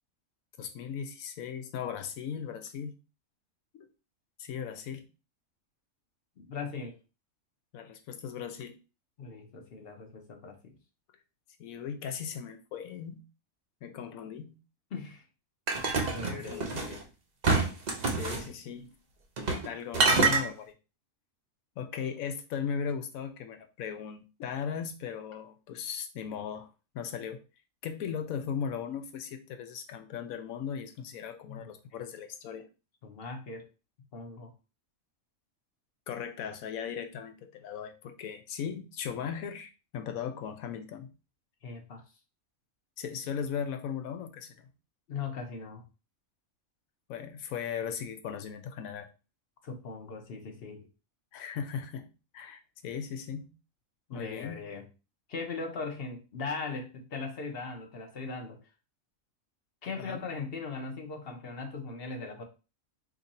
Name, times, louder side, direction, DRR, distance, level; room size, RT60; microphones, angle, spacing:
voice 1, 0.6-2.9 3.7-3.9 4.4-5.1 7.7-8.8 11.6-13.2 13.8-14.6 16.2-16.9 18.1-19.0 19.5-20.7 21.8-26.7 26.9-27.4 27.8-32.7 36.1-41.1 43.0-44.7 47.1-49.1 51.3-53.5 54.1-54.7 60.0-60.2, left 7 dB, 80° left, 7 dB, 1.0 m, -38 dB
voice 2, 6.4-6.9 9.2-10.8 14.9-15.2 16.1-17.0 31.4-31.7 33.0-33.7 34.1-34.5 41.6-42.0 45.1-45.8 49.6-50.9 54.1-54.8 55.3-58.6 59.8-62.4, left 4 dB, 50° left, 4 dB, 0.8 m, -39 dB
sound 1, 15.7-17.0 17.4-18.4 19.4-19.7 19.9-20.4, right 4 dB, 45° right, 0.6 m, -26 dB
3.0 x 2.5 x 4.0 m, 0.31 s
omnidirectional pair, 1.5 m